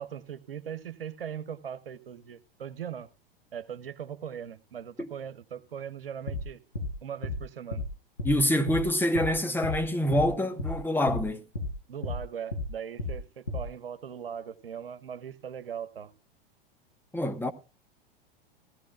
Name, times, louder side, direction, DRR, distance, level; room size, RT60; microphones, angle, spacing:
voice 1, 0.0-3.1 3.5-6.6 7.0-7.8 11.9-16.1, right 8 dB, 75° right, 1.2 m, -39 dB
sound 1, 6.3-6.4 6.8-6.9 7.2-7.4 7.7-7.9 8.2-8.4 8.7-8.8 9.1-9.3 9.6-9.8 10.1-10.3 10.6-10.8 11.1-11.2 11.6-11.7 12.0-12.2 12.5-12.7 13.0-13.2 13.5-13.6, left 2 dB, 90° left, 3.5 m, -32 dB
voice 2, 8.2-11.4 17.1-17.5, left 1 dB, 5° left, 1.1 m, -26 dB
16.5 x 15.5 x 2.4 m
figure-of-eight pair, 95°, 29 cm